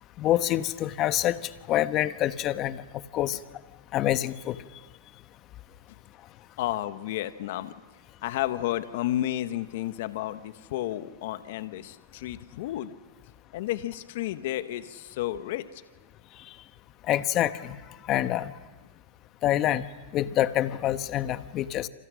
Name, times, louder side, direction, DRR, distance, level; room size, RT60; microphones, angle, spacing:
voice 1, 0.2-2.8 3.1-3.4 3.9-4.6 17.1-17.8 18.1-18.5 19.4-19.9 20.1-21.9, left 13 dB, 40° left, 12 dB, 1.3 m, -26 dB
voice 2, 6.6-7.7 8.2-12.9 13.5-15.8, left 14 dB, 65° left, 11 dB, 1.2 m, -32 dB
28.0 x 27.0 x 6.4 m, 1.3 s
hypercardioid pair, 115°, 0 cm